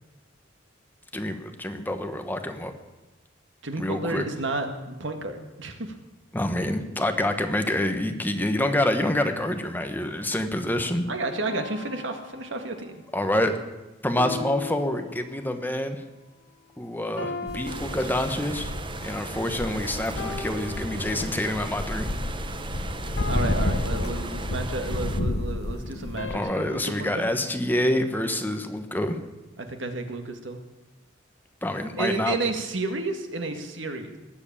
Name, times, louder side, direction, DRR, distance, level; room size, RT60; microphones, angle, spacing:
voice 1, 1.1-2.7 3.8-4.3 6.3-11.0 13.1-13.5 14.0-16.0 16.8-18.7 19.0-22.1 26.3-29.2 31.6-32.4, left 1 dB, 10° left, 6 dB, 1.2 m, -27 dB
voice 2, 3.6-5.9 11.1-13.0 23.3-27.3 29.6-30.6 32.0-34.2, right 2 dB, 70° right, 6 dB, 1.9 m, -31 dB
sound 1, 11.4-13.1 14.2-15.7 17.2-18.8 20.2-21.7 23.2-24.9 26.2-27.2, left 3 dB, 75° left, 1.9 m, -39 dB
sound 2, 17.5-26.4, left 1 dB, 55° left, 0.9 m, -31 dB
sound 3, 17.6-25.2, right 2 dB, 25° right, 0.9 m, -37 dB
19.0 x 8.1 x 8.7 m, 1.1 s
head